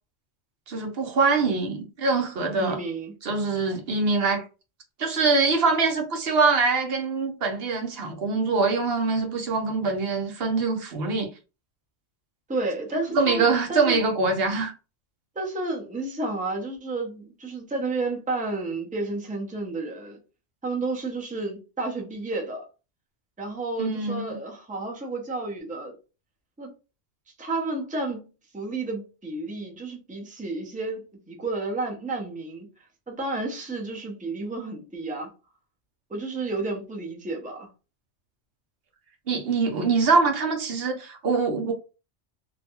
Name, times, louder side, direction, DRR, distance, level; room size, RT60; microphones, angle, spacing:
voice 1, 0.7-2.8 3.2-4.4 5.0-11.3 13.1-14.7 23.8-24.4 39.3-41.7, right 4 dB, 60° right, 0.8 m, -24 dB
voice 2, 2.6-3.1 12.5-14.0 15.4-20.2 20.6-22.7 23.4-26.0 26.6-26.7 27.4-28.3 28.5-35.3 36.1-37.7, right 3 dB, 10° right, 0.4 m, -31 dB
2.6 x 2.2 x 2.8 m
omnidirectional pair, 1.3 m